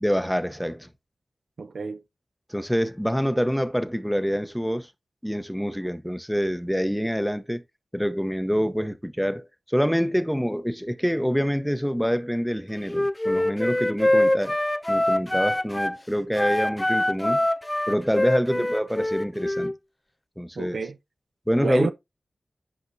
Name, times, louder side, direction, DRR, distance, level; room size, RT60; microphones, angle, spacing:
voice 1, 0.0-0.9 2.5-4.9 5.2-7.6 7.9-14.6 14.9-17.5 17.9-19.7 20.4-20.8 21.5-21.9, equal, ahead, 0.8 m, -26 dB
voice 2, 1.6-2.0 18.5-18.7 20.6-21.0 21.6-21.9, right 4 dB, 75° right, 0.9 m, -30 dB
Wind instrument woodwind instrument, 12.9-16.0 16.3-19.7, left 1 dB, 15° left, 0.4 m, -24 dB
11.0 x 5.1 x 2.7 m
cardioid pair, 50°, 0 cm